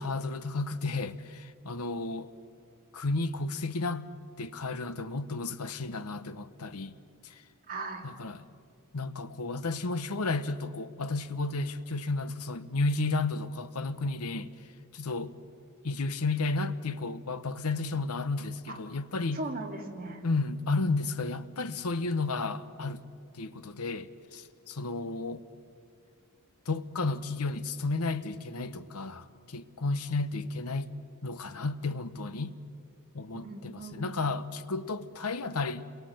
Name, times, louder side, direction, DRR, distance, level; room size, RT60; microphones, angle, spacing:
voice 1, 0.0-2.3 2.9-4.1 4.4-7.0 7.2-7.4 8.0-8.4 8.9-14.5 14.9-15.3 15.8-19.4 20.2-23.0 23.3-25.4 26.7-30.9 31.2-32.6 33.1-35.9, left 3 dB, 80° left, 1.0 m, -32 dB
voice 2, 7.7-8.0 18.7-18.8 19.3-20.2 33.3-34.1, right 2 dB, 40° right, 2.5 m, -38 dB
29.0 x 22.5 x 7.8 m
head